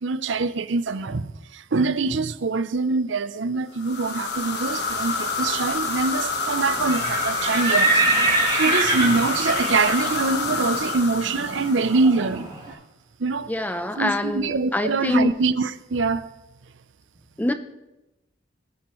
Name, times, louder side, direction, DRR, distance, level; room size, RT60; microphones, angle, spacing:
voice 1, 0.0-12.8 13.2-13.5 14.0-16.3, right 3 dB, 80° right, 0.6 m, -24 dB
sound 1, 3.8-12.3, left 4 dB, 55° left, 1.3 m, -28 dB
Livestock farm animals working animals, 6.7-12.6, right 2 dB, 20° right, 5.0 m, -25 dB
voice 2, 13.5-15.3 17.4-17.5, left 1 dB, 10° left, 0.6 m, -24 dB
20.5 x 10.5 x 3.1 m
head